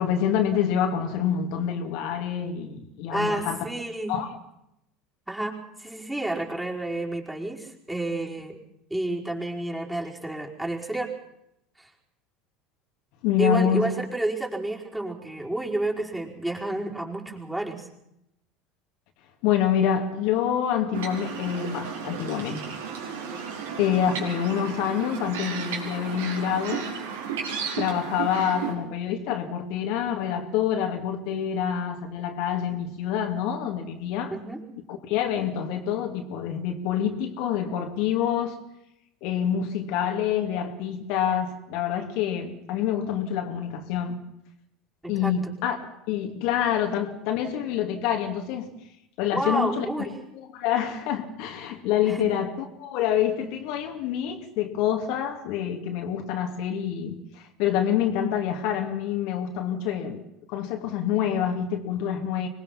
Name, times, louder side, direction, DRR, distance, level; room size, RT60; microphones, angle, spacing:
voice 1, 0.0-3.6 4.1-4.3 13.2-13.9 19.4-22.8 23.8-26.9 27.8-34.3 34.9-38.6 39.2-44.2 45.1-48.7 49.2-50.1 50.3-60.2 60.5-62.5, left 9 dB, 65° left, 2.6 m, -27 dB
voice 2, 3.1-4.2 5.3-8.6 8.9-11.1 11.8-11.9 13.4-17.9 34.3-34.6 45.0-45.5 49.3-50.1 52.1-52.3, right 1 dB, 10° right, 5.0 m, -30 dB
sound 1, 20.9-28.7, right 6 dB, 75° right, 5.3 m, -34 dB
25.0 x 21.0 x 6.0 m
hypercardioid pair, 75°, 0 cm